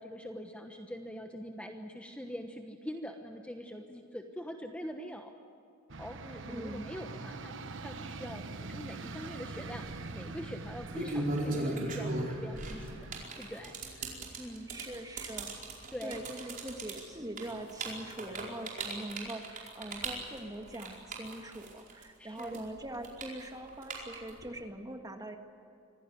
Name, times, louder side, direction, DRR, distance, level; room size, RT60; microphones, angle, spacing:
voice 1, 0.0-5.3 6.0-9.9 10.1-13.1 13.4-14.9 15.9-16.3 22.2-22.6, equal, 5° left, 4 dB, 1.1 m, -44 dB
sound 1, 5.9-13.3, right 3 dB, 65° right, 1.1 m, -44 dB
voice 2, 6.2-6.8 14.7-15.5 16.0-25.4, right 1 dB, 20° right, 4 dB, 1.8 m, -42 dB
sound 2, 9.6-9.9 10.7-22.0 22.4-24.4, right 2 dB, 45° right, 4.8 m, -37 dB
26.0 x 16.5 x 9.4 m, 2.7 s
head